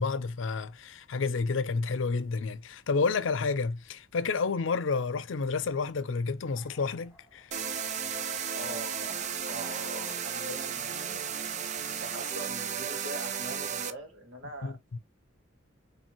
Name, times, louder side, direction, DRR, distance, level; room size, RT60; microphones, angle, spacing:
voice 1, 0.0-7.5 14.6-15.0, left 4 dB, 75° left, 0.5 m, -30 dB
sound 1, 6.3-11.8, left 2 dB, 10° right, 1.4 m, -59 dB
sound 2, 7.5-13.9, right 7 dB, 35° right, 0.4 m, -34 dB
voice 2, 8.5-11.3 12.0-14.8, right 1 dB, 75° right, 1.8 m, -42 dB
4.5 x 3.3 x 2.8 m
head